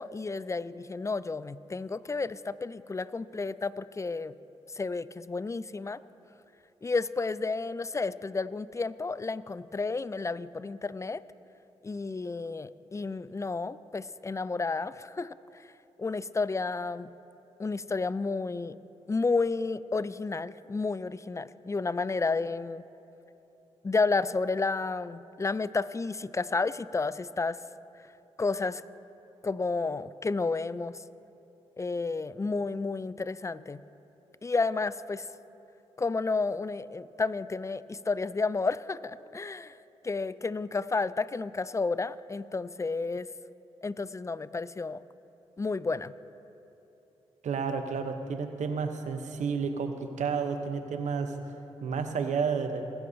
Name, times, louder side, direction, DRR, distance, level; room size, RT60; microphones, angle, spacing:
voice 1, 0.0-4.3 4.7-6.0 6.8-11.2 11.8-15.6 16.0-17.1 17.6-18.8 19.1-22.8 23.8-27.6 28.4-28.8 29.4-31.0 31.8-33.8 34.4-35.3 36.0-39.8 40.0-43.3 43.8-45.0 45.6-46.1, left 3 dB, 25° left, 17 dB, 0.4 m, -31 dB
voice 2, 47.4-51.4 51.8-52.9, right 5 dB, 75° right, 7 dB, 0.9 m, -31 dB
20.5 x 10.0 x 2.8 m, 2.9 s
supercardioid pair, 40°, 13 cm